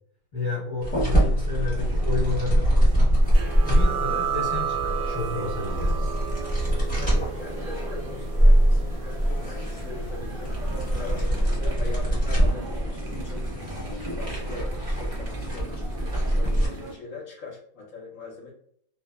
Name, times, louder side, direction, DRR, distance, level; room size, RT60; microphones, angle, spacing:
voice 1, 0.3-3.1 3.6-6.1, left 4 dB, 35° left, -7 dB, 0.9 m, -31 dB
sound 1, 0.8-16.7, right 1 dB, 5° left, 0.7 m, -24 dB
sound 2, 1.7-16.9, equal, 70° right, 0.5 m, -40 dB
sound 3, 3.3-10.6, right 8 dB, 85° right, 1.2 m, -33 dB
voice 2, 7.0-10.7 11.0-13.5 14.0-18.5, left 3 dB, 65° left, -2 dB, 0.9 m, -41 dB
2.7 x 2.1 x 2.2 m, 0.66 s
omnidirectional pair, 1.8 m